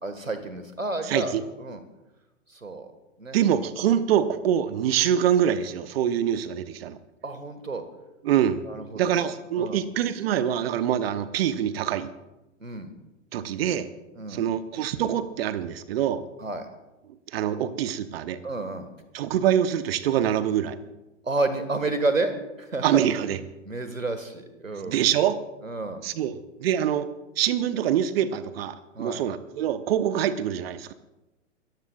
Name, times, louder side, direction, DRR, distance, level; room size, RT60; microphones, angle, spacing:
voice 1, 0.0-1.8 2.5-2.9 3.2-3.4 7.2-7.8 8.6-9.2 9.6-9.8 12.6-12.9 14.1-14.4 16.4-16.7 18.4-18.9 21.2-23.1 23.6-25.0 25.6-26.0 28.9-29.2, right 2 dB, 85° right, 9 dB, 1.8 m, -30 dB
voice 2, 1.1-1.4 3.3-7.0 8.2-8.6 8.9-12.1 13.3-13.9 14.3-16.2 17.3-18.4 19.1-20.8 22.8-23.4 24.8-25.4 26.0-27.1 27.4-30.9, right 10 dB, 50° right, 13 dB, 1.0 m, -25 dB
26.0 x 14.5 x 2.4 m, 1.0 s
figure-of-eight pair, 105°, 39 cm